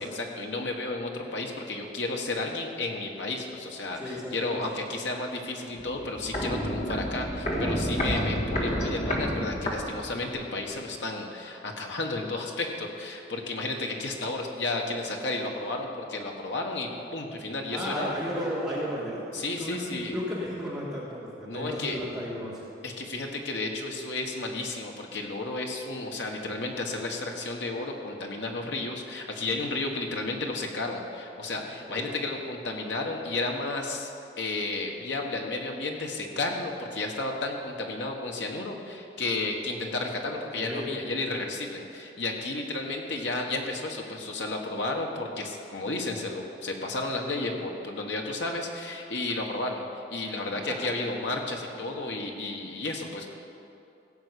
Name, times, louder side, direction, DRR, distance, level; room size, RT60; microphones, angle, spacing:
voice 1, 0.1-18.2 19.3-20.1 21.5-22.0 22.8-34.1 34.4-53.3, left 2 dB, 75° left, 1 dB, 1.5 m, -32 dB
voice 2, 3.9-4.6 17.7-19.3 19.6-22.7 31.6-32.1 40.5-40.9 50.2-50.8, equal, 5° right, -8 dB, 2.9 m, -34 dB
Walk footsteps, 5.8-10.5 10.7-10.8, equal, 35° left, 1.7 m, -30 dB
16.0 x 5.6 x 8.3 m, 2.7 s
head